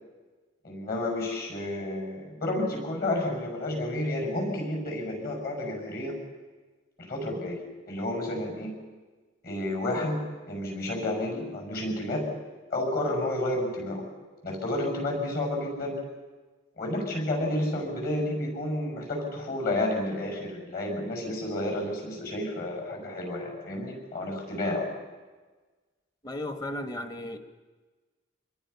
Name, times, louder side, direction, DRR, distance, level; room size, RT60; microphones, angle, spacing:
voice 1, 0.6-6.2 7.0-8.7 9.4-12.3 12.7-14.0 14.4-16.0 16.8-24.9, left 1 dB, 45° left, 2 dB, 7.2 m, -31 dB
voice 2, 26.2-27.4, left 1 dB, 20° left, 7 dB, 1.2 m, -35 dB
26.5 x 21.5 x 5.8 m, 1.3 s
head